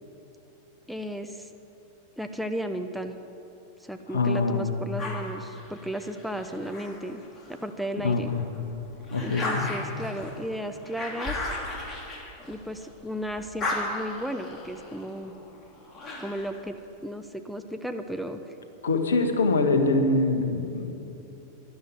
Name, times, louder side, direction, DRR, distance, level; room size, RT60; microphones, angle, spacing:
voice 1, 0.9-1.5 2.2-3.1 3.8-7.2 7.5-8.3 9.2-11.4 12.5-15.3 16.2-16.7 17.0-18.5, equal, ahead, 5 dB, 0.8 m, -34 dB
voice 2, 4.1-4.7 8.0-8.4 9.1-9.7 18.8-20.9, left 3 dB, 70° left, 6 dB, 1.5 m, -24 dB
sound 1, 5.0-7.7 8.2-13.0 13.3-16.6, left 2 dB, 25° left, 3.1 m, -36 dB
12.5 x 11.5 x 9.4 m, 2.9 s
figure-of-eight pair, 90°, 0 cm